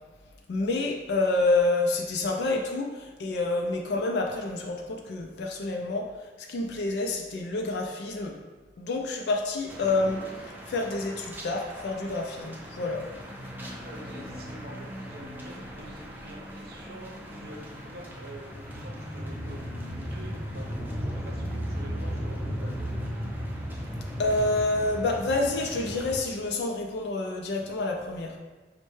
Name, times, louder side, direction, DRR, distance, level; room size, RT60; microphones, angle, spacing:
voice 1, 0.5-8.4 8.8-13.0 24.2-28.4, left 2 dB, 70° left, 1 dB, 0.4 m, -28 dB
sound 1, 9.7-26.2, equal, 10° right, 0.4 m, -37 dB
voice 2, 13.8-23.1, right 1 dB, 60° right, -1 dB, 0.7 m, -46 dB
5.2 x 2.1 x 3.1 m, 1.3 s
head